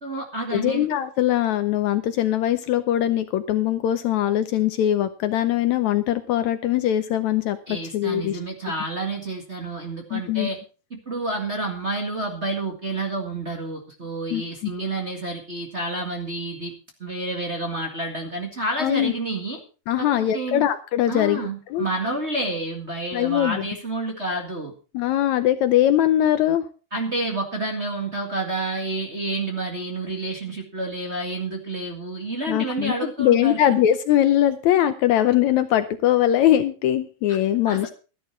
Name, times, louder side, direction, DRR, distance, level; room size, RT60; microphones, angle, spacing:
voice 1, 0.0-0.9 7.7-10.6 10.9-16.7 17.0-19.6 20.0-20.7 21.1-24.7 26.9-33.8 37.6-37.9, right 2 dB, 25° right, 1 dB, 1.6 m, -29 dB
voice 2, 0.5-8.4 10.1-10.5 14.3-14.4 18.8-19.1 19.9-21.4 21.7-21.9 23.1-23.7 24.9-26.6 32.5-37.9, left 12 dB, 75° left, 11 dB, 1.9 m, -21 dB
13.5 x 11.0 x 4.5 m, 0.35 s
omnidirectional pair, 3.7 m